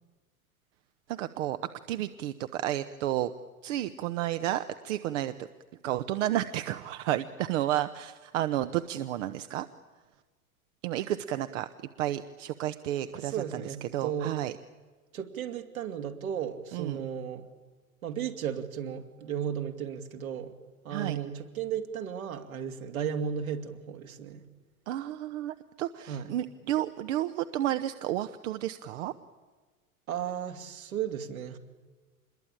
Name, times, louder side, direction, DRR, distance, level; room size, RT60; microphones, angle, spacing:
voice 1, 1.1-1.6 1.9-3.3 3.6-5.5 5.8-9.7 10.8-11.7 12.0-13.6 13.9-14.5 16.7-17.0 20.9-21.2 24.9-29.1, right 13 dB, 60° right, 10 dB, 1.1 m, -31 dB
voice 2, 13.1-14.4 15.1-17.5 18.0-20.5 20.8-24.5 26.1-26.3 30.1-31.6, right 8 dB, 75° right, 5 dB, 2.6 m, -35 dB
26.5 x 21.5 x 8.8 m, 1.3 s
figure-of-eight pair, 85°, 43 cm